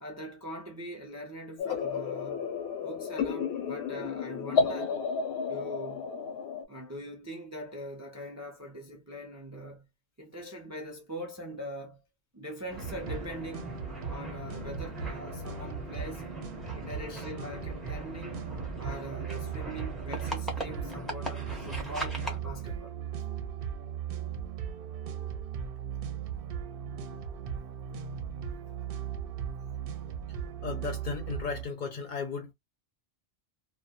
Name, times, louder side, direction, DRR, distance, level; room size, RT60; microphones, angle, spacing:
voice 1, 0.0-2.5 2.8-5.0 5.5-6.1 6.7-9.9 10.2-12.0 12.3-13.8 14.1-16.3 16.7-18.4 18.8-22.9, equal, 30° right, 0.3 m, -42 dB
sound 1, 1.6-6.6, left 5 dB, 85° left, 0.8 m, -32 dB
sound 2, 12.7-22.4, right 1 dB, ahead, 0.6 m, -40 dB
sound 3, 12.7-31.6, right 7 dB, 65° right, 0.7 m, -38 dB
voice 2, 30.6-32.5, left 4 dB, 55° left, 0.6 m, -35 dB
2.2 x 2.1 x 2.8 m
omnidirectional pair, 1.1 m